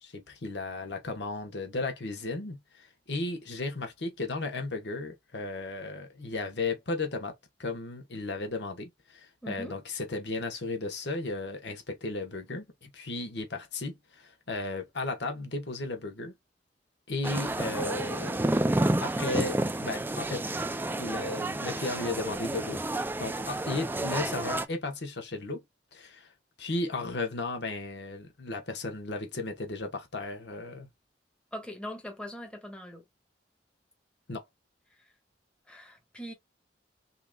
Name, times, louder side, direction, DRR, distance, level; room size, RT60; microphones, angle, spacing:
voice 1, 0.0-16.3 17.1-18.5 19.0-20.5 21.0-22.8 23.2-25.6 25.9-26.3 26.6-30.9 34.3-34.4, left 2 dB, 70° left, 1.0 m, -35 dB
voice 2, 9.4-9.8 31.5-33.0 35.0-35.1 35.7-36.3, equal, 5° left, 1.2 m, -41 dB
sound 1, 17.2-24.7, right 1 dB, 10° right, 0.3 m, -30 dB
5.5 x 2.7 x 2.2 m
head